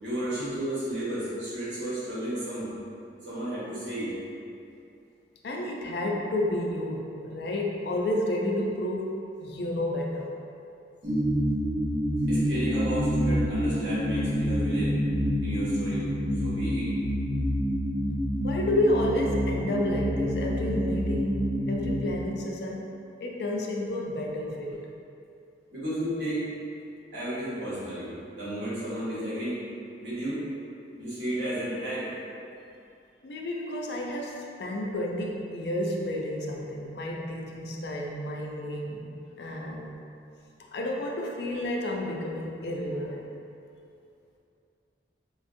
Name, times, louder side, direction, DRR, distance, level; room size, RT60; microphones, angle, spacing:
voice 1, 0.0-2.7 3.2-4.2 12.3-15.0 15.4-16.1 16.4-16.9 25.7-26.4 27.1-29.6 30.0-30.5 31.0-32.1, right 1 dB, 85° right, -10 dB, 1.1 m, -32 dB
voice 2, 5.4-10.3 18.4-22.9 23.2-24.9 33.2-39.1 39.4-40.0 40.7-43.3, left 1 dB, 65° left, 0 dB, 0.4 m, -30 dB
sound 1, 11.0-22.1, equal, 55° right, 0.7 m, -27 dB
4.2 x 2.3 x 2.6 m, 2.5 s
head